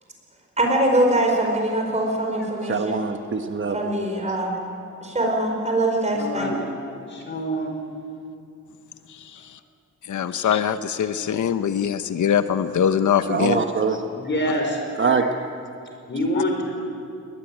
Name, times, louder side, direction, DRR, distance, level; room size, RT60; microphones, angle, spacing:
voice 1, 0.6-3.0 3.7-4.5 5.0-6.5, right 1 dB, 25° right, 1 dB, 4.6 m, -22 dB
voice 2, 2.6-3.8 13.2-14.0 15.0-15.3, right 5 dB, 40° right, 6 dB, 1.1 m, -23 dB
voice 3, 6.1-6.6 7.1-7.7 10.3-10.4 14.1-14.8 16.1-16.7, equal, 40° left, 2 dB, 5.1 m, -26 dB
voice 4, 9.1-9.6 10.1-13.6, left 8 dB, 85° left, 10 dB, 0.9 m, -23 dB
21.5 x 20.0 x 9.1 m, 2.5 s
wide cardioid pair, 170°, 29 cm